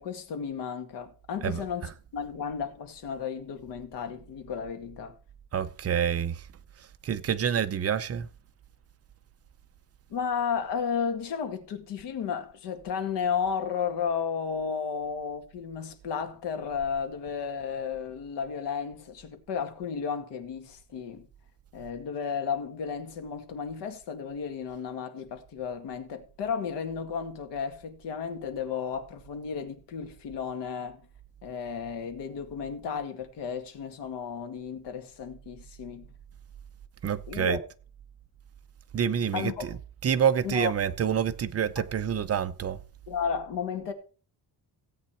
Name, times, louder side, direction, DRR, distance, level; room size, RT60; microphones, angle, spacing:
voice 1, 0.0-5.1 10.1-21.3 21.7-31.0 31.4-36.1 37.3-37.6 39.3-39.8 40.4-40.7 41.8-41.9 43.1-43.9, left 6 dB, 90° left, 2.0 m, -33 dB
voice 2, 5.5-6.4 7.0-8.3 37.0-37.6 38.9-42.8, right 8 dB, 35° right, 0.7 m, -27 dB
16.0 x 8.6 x 4.4 m
cardioid pair, 165°, 40 cm